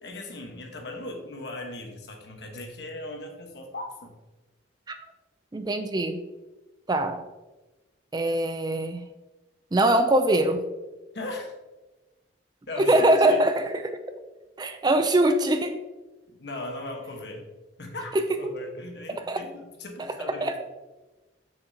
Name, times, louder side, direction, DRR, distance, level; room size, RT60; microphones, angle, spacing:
voice 1, 0.0-4.2 11.1-11.5 12.7-13.4 16.3-17.5 17.8-18.1 18.4-20.5, left 2 dB, 65° left, 2 dB, 1.2 m, -38 dB
voice 2, 5.5-6.2 6.9-7.2 8.1-9.1 9.7-10.7 12.8-13.8 14.6-15.8 18.1-18.5 19.1-19.4 20.0-20.6, right 1 dB, 20° right, 8 dB, 0.3 m, -23 dB
7.0 x 6.6 x 2.8 m, 1.1 s
head